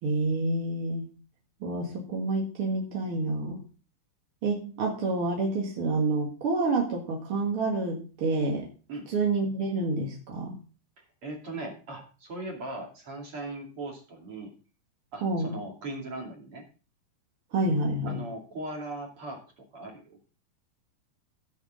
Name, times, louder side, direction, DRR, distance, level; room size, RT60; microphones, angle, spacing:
voice 1, 0.0-1.1 1.6-3.6 4.4-8.7 9.1-10.6 15.2-15.5 17.5-18.2, right 2 dB, 55° right, 0 dB, 1.6 m, -28 dB
voice 2, 8.9-9.2 11.2-14.5 15.1-16.7 18.0-20.2, right 2 dB, 35° right, 0 dB, 2.8 m, -39 dB
16.0 x 7.1 x 3.8 m, 0.37 s
omnidirectional pair, 5.1 m